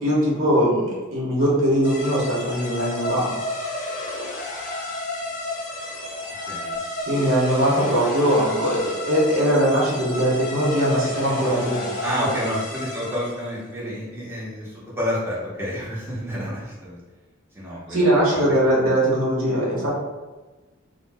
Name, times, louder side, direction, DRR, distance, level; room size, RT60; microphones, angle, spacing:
voice 1, 0.0-3.3 7.0-11.9 12.2-12.3 17.9-19.9, equal, 70° right, -5 dB, 0.9 m, -21 dB
sound 1, 1.8-13.5, left 1 dB, 40° left, 0.5 m, -31 dB
voice 2, 6.5-6.8 12.0-17.0 17.5-18.1, equal, 10° right, -8 dB, 0.7 m, -29 dB
2.5 x 2.1 x 3.3 m, 1.2 s
head